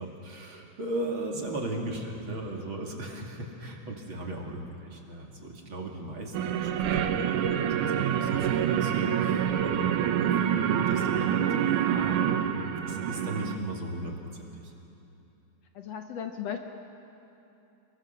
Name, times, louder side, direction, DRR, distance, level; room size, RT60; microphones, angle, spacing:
voice 1, 0.0-14.1 14.5-14.7, right 1 dB, 45° right, 0 dB, 3.0 m, -37 dB
sound 1, 6.3-13.6, right 9 dB, 85° right, 2.4 m, -26 dB
voice 2, 15.8-16.6, left 8 dB, 65° left, 5 dB, 1.9 m, -37 dB
29.0 x 22.5 x 6.8 m, 2.9 s
omnidirectional pair, 3.5 m